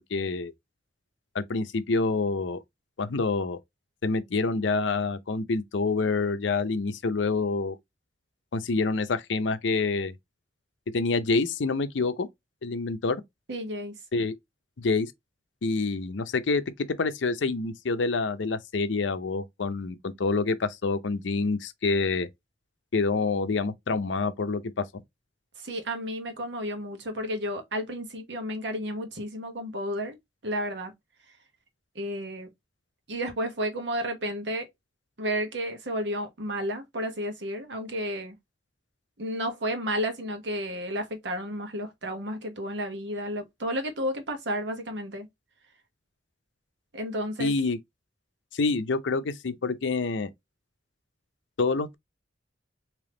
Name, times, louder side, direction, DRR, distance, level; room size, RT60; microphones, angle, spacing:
voice 1, 0.1-0.5 1.3-2.6 3.0-3.6 4.0-7.8 8.5-10.1 10.9-12.3 12.6-13.2 14.1-14.3 14.8-15.1 15.6-16.6 17.0-22.3 22.9-25.0 47.4-47.8 48.5-50.3 51.6-52.0, left 3 dB, 80° left, 0.6 m, -27 dB
voice 2, 13.5-13.9 25.6-30.2 30.4-30.9 31.9-32.5 33.1-34.7 35.2-38.4 39.2-45.3 46.9-47.5, equal, 70° right, 1.1 m, -32 dB
3.5 x 3.0 x 3.8 m
head